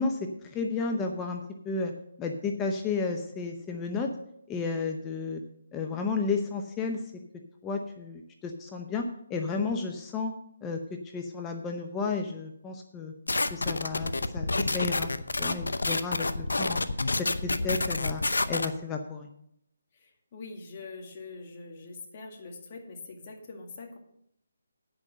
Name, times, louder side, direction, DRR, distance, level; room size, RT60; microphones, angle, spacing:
voice 1, 0.0-1.9 2.2-4.1 4.5-5.4 5.7-7.0 7.6-10.3 10.6-10.8 11.1-13.1 13.5-15.1 15.4-16.8 17.2-18.2 18.5-19.3, left 4 dB, 15° left, 3 dB, 0.7 m, -32 dB
sound 1, 13.3-18.7, left 2 dB, 85° left, 0.7 m, -28 dB
voice 2, 19.9-24.0, left 3 dB, 35° left, 1 dB, 2.0 m, -44 dB
8.9 x 6.3 x 7.8 m, 0.75 s
figure-of-eight pair, 155°, 0 cm